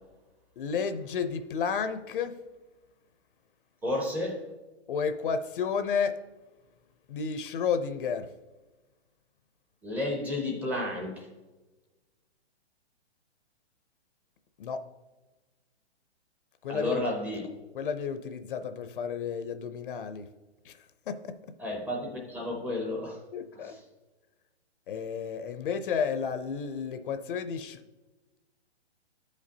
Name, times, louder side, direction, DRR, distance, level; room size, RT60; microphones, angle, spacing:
voice 1, 0.6-2.4 4.9-6.2 7.1-8.3 14.6-14.8 16.6-17.0 17.7-20.3 20.7-20.8 21.1-21.4 23.3-23.7 24.9-27.8, left 6 dB, 50° left, 0.6 m, -31 dB
voice 2, 3.8-4.4 9.8-11.3 16.7-17.5 21.6-23.2 23.5-23.8, left 1 dB, 5° right, 0.5 m, -32 dB
13.0 x 5.2 x 2.7 m
hypercardioid pair, 145°, 34 cm